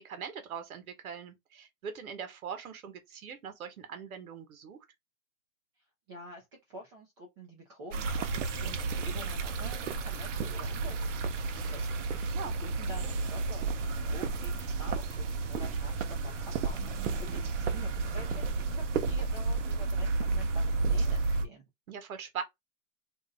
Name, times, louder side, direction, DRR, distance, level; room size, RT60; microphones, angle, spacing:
voice 1, 0.0-4.8 12.3-12.5 17.0-17.4 21.9-22.4, right 7 dB, 80° right, 1.0 m, -41 dB
voice 2, 6.1-21.6, right 1 dB, 20° right, 0.5 m, -48 dB
sound 1, 7.9-21.4, right 4 dB, 60° right, 0.7 m, -32 dB
2.6 x 2.1 x 3.9 m
hypercardioid pair, 160°, 42 cm